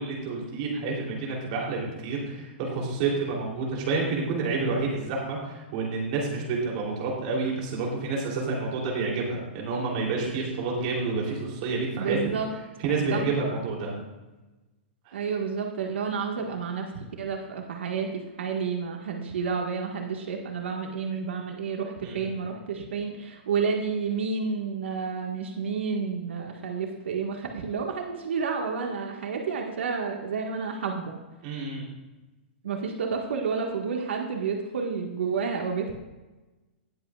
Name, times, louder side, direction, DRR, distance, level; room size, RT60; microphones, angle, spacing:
voice 1, 0.0-12.2 12.8-13.9 15.0-15.1 22.0-22.3 31.4-31.8, right 4 dB, 35° right, -2 dB, 3.2 m, -29 dB
voice 2, 12.0-12.5 13.1-13.2 15.1-31.2 32.6-35.9, right 5 dB, 85° right, 2 dB, 1.7 m, -30 dB
19.0 x 8.0 x 2.5 m, 1.1 s
hypercardioid pair, 175°, 6 cm